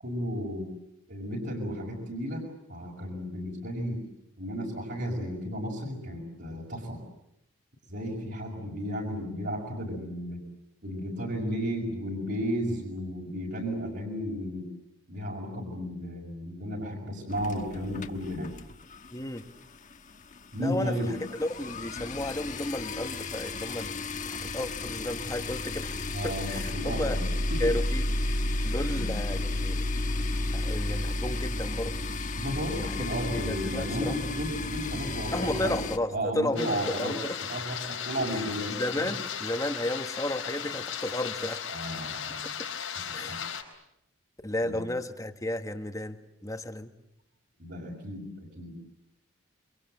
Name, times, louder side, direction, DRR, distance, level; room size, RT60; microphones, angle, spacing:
voice 1, 0.0-0.7 1.1-4.0 4.4-7.0 7.9-10.4 10.8-14.7 15.1-18.5 20.5-21.1 26.1-27.2 27.5-27.7 28.8-29.1 32.4-35.8 36.1-37.1 37.5-39.1 41.7-42.6 42.9-43.4 44.6-44.8 47.6-48.8, equal, 55° right, -3 dB, 6.0 m, -34 dB
sound 1, 17.3-19.1 19.4-19.6 19.9-20.0 20.2-36.0, left 2 dB, 40° left, 1.3 m, -32 dB
voice 2, 19.1-19.5 20.6-27.2 27.6-28.1 28.6-29.8 30.5-32.0 32.7-32.9 33.3-34.2 35.3-37.4 38.2-41.7 43.1-43.4 44.4-46.9, left 1 dB, 15° left, 8 dB, 1.4 m, -33 dB
sound 2, 36.6-43.6, left 8 dB, 85° left, 4.4 m, -36 dB
28.5 x 25.0 x 7.9 m, 0.81 s
head